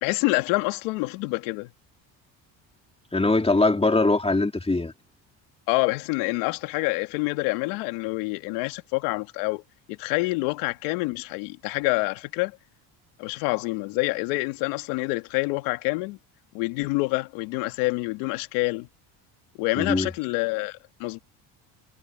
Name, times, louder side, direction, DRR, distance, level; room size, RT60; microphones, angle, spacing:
voice 1, 0.0-1.7 5.7-9.6 9.9-12.5 13.2-16.2 16.5-18.9 19.6-21.2, left 24 dB, 85° left, 2.3 m, -27 dB
voice 2, 3.1-4.9 19.8-20.1, left 2 dB, 10° left, 2.1 m, -22 dB
supercardioid pair, 80°, 50 cm